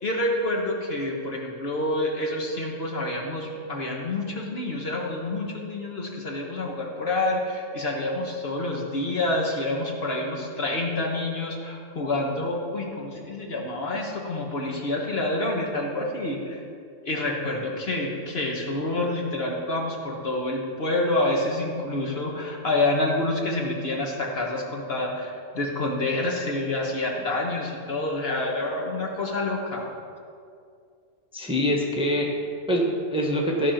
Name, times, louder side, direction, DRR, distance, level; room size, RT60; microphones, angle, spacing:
voice 1, 0.0-16.6 17.0-29.9, left 2 dB, 50° left, -1 dB, 1.6 m, -28 dB
voice 2, 31.3-33.7, equal, 5° right, -1 dB, 1.0 m, -25 dB
15.0 x 5.1 x 5.8 m, 2.4 s
omnidirectional pair, 1.3 m